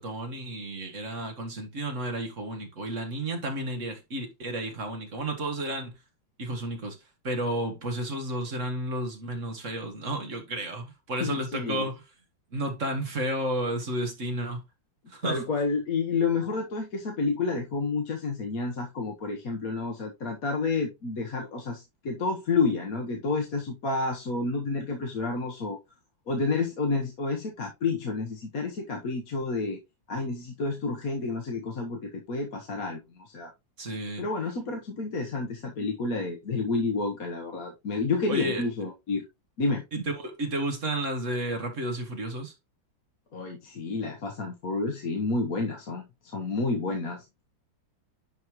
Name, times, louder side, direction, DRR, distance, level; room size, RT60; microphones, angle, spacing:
voice 1, 0.0-6.0 6.4-7.0 7.2-12.0 12.5-14.6 15.1-15.4 33.8-34.2 38.3-38.6 39.9-42.5, right 1 dB, 40° right, 1.8 m, -32 dB
voice 2, 11.2-11.9 15.2-25.8 26.3-29.8 30.1-33.5 34.2-39.2 39.6-39.8 43.3-46.1 46.3-47.2, left 3 dB, 50° left, 1.5 m, -30 dB
10.5 x 4.2 x 3.0 m
omnidirectional pair, 2.1 m